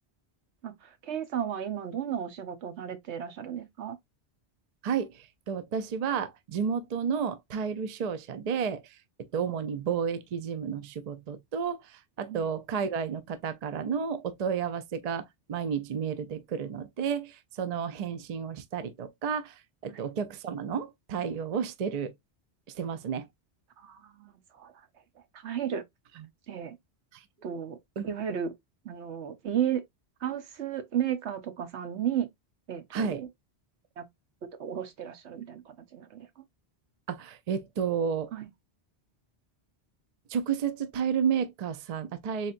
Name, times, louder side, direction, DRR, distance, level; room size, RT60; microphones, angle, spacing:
voice 1, 0.6-4.0 12.3-12.5 19.9-20.0 23.8-24.9 25.3-25.8 26.5-26.8 27.4-27.8 28.0-28.5 28.8-29.8 30.2-32.3 32.7-33.3 34.0-34.1 34.6-36.4 38.3-38.5, right 9 dB, 85° right, 1.2 m, -34 dB
voice 2, 4.8-22.1 22.7-23.3 27.1-27.2 28.0-28.1 32.9-33.2 37.1-38.3 40.3-42.5, right 7 dB, 50° right, 0.5 m, -32 dB
4.1 x 3.5 x 2.5 m
omnidirectional pair, 1.1 m